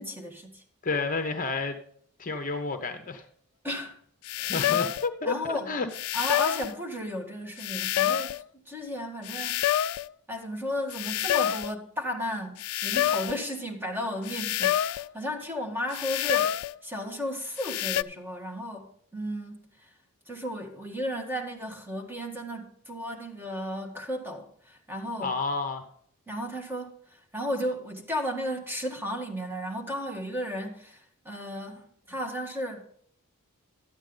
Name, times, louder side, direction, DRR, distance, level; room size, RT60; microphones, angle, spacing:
voice 1, 0.0-0.6 3.6-4.0 4.4-4.7 5.2-5.7 6.1-9.6 10.3-19.9 20.3-25.3 26.3-32.9, equal, 10° right, 1.7 m, -34 dB
voice 2, 0.8-1.8 2.2-3.2 4.5-5.9 25.2-25.8, left 3 dB, 40° left, 0.9 m, -30 dB
sound 1, 4.3-5.1 5.9-6.7 7.6-8.4 9.2-10.1 10.9-11.7 12.6-13.4 14.2-15.1 15.9-16.7 17.6-18.0, left 12 dB, 75° left, 0.4 m, -27 dB
12.5 x 8.8 x 3.9 m
head